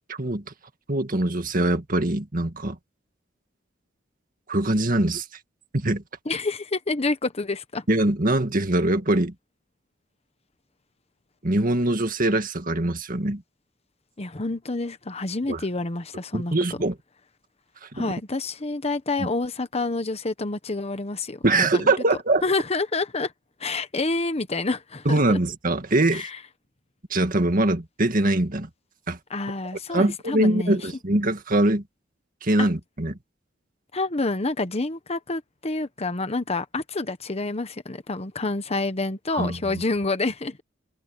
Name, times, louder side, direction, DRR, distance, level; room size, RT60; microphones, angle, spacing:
voice 1, 0.1-0.4 0.9-2.8 4.5-5.3 5.7-6.0 7.9-9.3 11.4-13.4 15.5-15.6 16.3-16.9 17.9-18.1 19.2-19.3 21.4-22.4 25.1-26.3 27.1-28.7 29.1-29.2 29.9-31.8 32.4-33.1 39.3-39.8, right 2 dB, 45° right, 2.0 m, -23 dB
voice 2, 6.2-7.8 14.2-16.5 17.9-21.9 22.4-23.3 23.6-25.4 26.1-26.4 29.3-30.9 32.6-32.7 33.9-40.6, left 3 dB, 35° left, 1.1 m, -28 dB
head